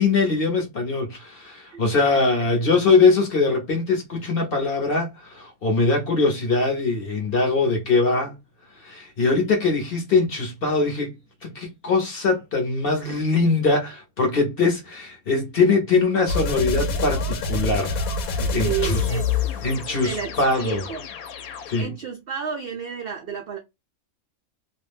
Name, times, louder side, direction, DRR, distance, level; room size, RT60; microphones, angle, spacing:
voice 1, 0.0-8.3 8.8-11.1 11.4-18.0 18.5-19.0 19.6-20.8 21.7-21.9, left 3 dB, 50° left, 0.7 m, -22 dB
voice 2, 2.1-2.7 13.1-13.2 18.4-19.3 20.0-21.1 21.8-23.6, right 7 dB, 80° right, 0.5 m, -32 dB
sound 1, 16.3-21.8, left 3 dB, 75° left, 1.0 m, -27 dB
2.4 x 2.1 x 3.2 m
omnidirectional pair, 1.5 m